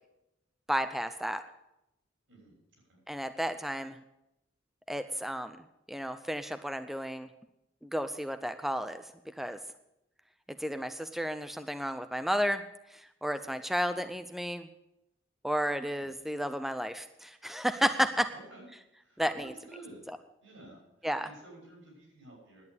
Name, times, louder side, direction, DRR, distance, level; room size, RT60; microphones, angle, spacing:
voice 1, 0.7-1.4 3.1-4.0 4.9-5.6 5.9-7.3 7.8-9.6 10.6-12.6 12.9-14.7 15.4-18.3 19.2-19.5 21.0-21.3, equal, ahead, 9 dB, 0.4 m, -32 dB
voice 2, 18.3-18.7 19.0-20.1 20.4-22.6, right 2 dB, 80° right, -1 dB, 6.1 m, -52 dB
11.0 x 8.8 x 8.2 m, 0.86 s
head